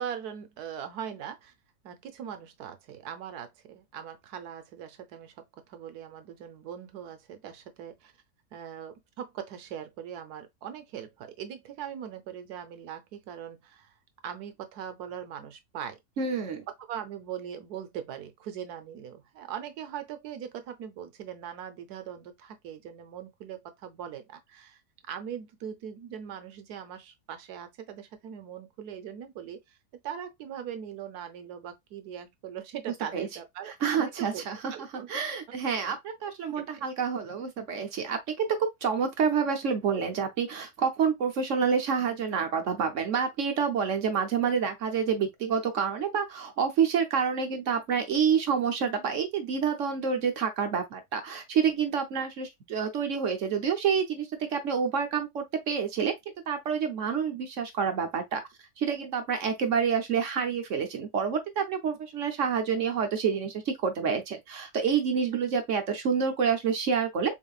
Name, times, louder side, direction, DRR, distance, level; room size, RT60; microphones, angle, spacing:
voice 1, 0.0-1.5 1.8-8.1 8.5-13.9 14.2-16.0 16.8-24.8 25.1-29.8 30.0-34.4 34.7-35.1 36.6-36.7, right 9 dB, 75° right, 1.3 m, -40 dB
voice 2, 16.2-16.6 33.1-33.3 33.8-34.7 35.1-56.1 56.5-58.4 58.8-67.3, right 6 dB, 60° right, 1.0 m, -28 dB
3.9 x 3.7 x 2.3 m
omnidirectional pair, 1.7 m